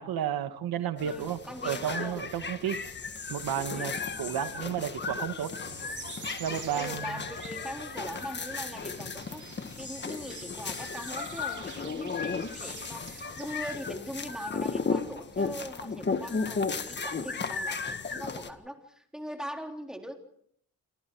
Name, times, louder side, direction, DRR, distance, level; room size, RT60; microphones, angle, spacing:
voice 1, 0.0-2.8 3.3-3.9 4.2-5.5 6.4-7.2, right 9 dB, 90° right, 9 dB, 1.8 m, -32 dB
sound 1, 1.0-18.5, left 4 dB, 30° left, 1.7 m, -35 dB
voice 2, 1.0-2.2 3.7-3.9 6.7-9.4 9.8-20.2, equal, ahead, 3 dB, 3.5 m, -41 dB
sound 2, 5.6-13.8, right 7 dB, 55° right, 2.2 m, -48 dB
28.0 x 25.0 x 4.7 m, 0.67 s
cardioid pair, 140°, 35 cm